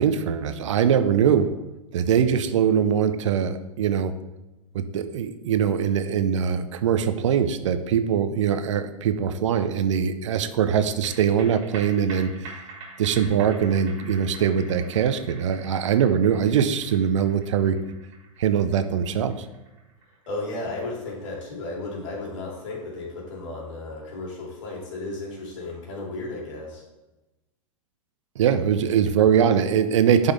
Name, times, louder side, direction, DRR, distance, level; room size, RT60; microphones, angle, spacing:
voice 1, 0.0-1.6 1.9-4.1 4.7-12.5 13.0-17.8 18.4-19.4 28.4-30.3, right 8 dB, 60° right, 10 dB, 0.7 m, -22 dB
sound 1, 10.8-23.5 23.8-23.9, right 3 dB, 35° right, 3.2 m, -46 dB
voice 2, 20.3-26.8, left 2 dB, 60° left, -3 dB, 3.2 m, -34 dB
11.5 x 5.5 x 3.4 m, 1.0 s
figure-of-eight pair, 100°, 18 cm